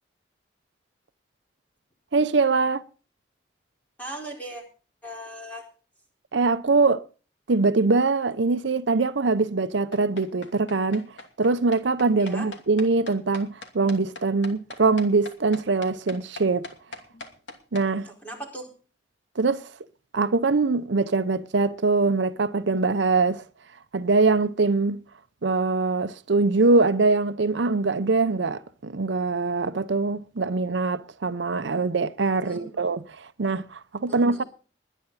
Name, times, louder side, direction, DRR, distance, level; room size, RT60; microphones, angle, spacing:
voice 1, 2.1-2.8 6.3-7.0 7.5-11.1 11.4-16.7 17.7-18.1 19.4-19.7 20.1-23.4 23.9-25.0 25.4-34.4, right 3 dB, 75° right, 0.7 m, -23 dB
voice 2, 4.0-4.6 5.0-5.7 12.2-12.5 18.0-18.7 32.4-32.8 34.1-34.5, right 1 dB, 10° left, 4.6 m, -38 dB
sound 1, 9.9-17.9, left 3 dB, 80° left, 2.8 m, -40 dB
21.5 x 10.0 x 4.1 m
head